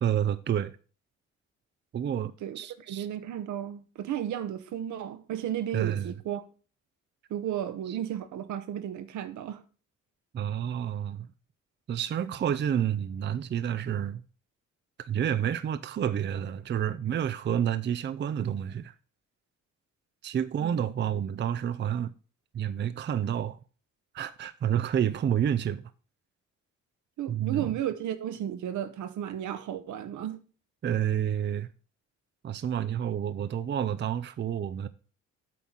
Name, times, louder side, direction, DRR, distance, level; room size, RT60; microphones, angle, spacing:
voice 1, 0.0-0.8 1.9-3.1 5.7-6.1 7.9-8.0 10.3-11.3 11.9-14.2 15.0-18.9 20.2-22.1 22.5-23.6 24.1-25.8 27.3-27.8 30.8-31.7 32.4-34.9, right 9 dB, 35° right, 0.5 m, -29 dB
voice 2, 2.4-6.4 7.3-9.6 20.6-20.8 21.3-21.4 27.2-30.4, right 10 dB, 75° right, 1.0 m, -34 dB
8.4 x 4.0 x 6.1 m
cardioid pair, 90°, 30 cm